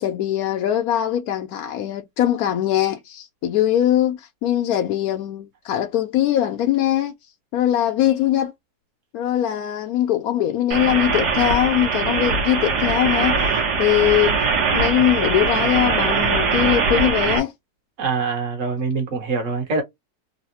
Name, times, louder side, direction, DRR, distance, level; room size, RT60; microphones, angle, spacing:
voice 1, 0.0-7.1 7.5-8.5 9.1-13.4 13.8-14.4 14.7-17.5, left 12 dB, 70° left, 1.0 m, -21 dB
sound 1, 10.7-17.4, right 4 dB, 70° right, 1.6 m, -21 dB
voice 2, 18.0-19.8, right 4 dB, 50° right, 1.6 m, -24 dB
3.9 x 2.1 x 2.7 m
omnidirectional pair, 1.8 m